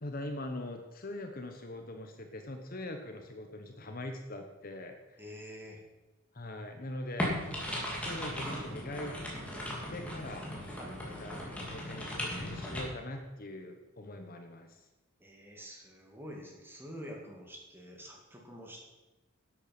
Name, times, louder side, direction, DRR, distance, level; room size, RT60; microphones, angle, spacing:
voice 1, 0.0-5.2 6.3-7.5 8.0-9.2 9.9-10.4 11.0-14.8, left 1 dB, 45° left, 5 dB, 1.1 m, -42 dB
voice 2, 5.2-5.8 10.8-11.0 15.2-18.9, equal, 10° right, 0 dB, 2.3 m, -47 dB
sound 1, 7.2-12.8, equal, 5° left, 2.8 m, -37 dB
11.5 x 8.6 x 6.1 m, 1.1 s
head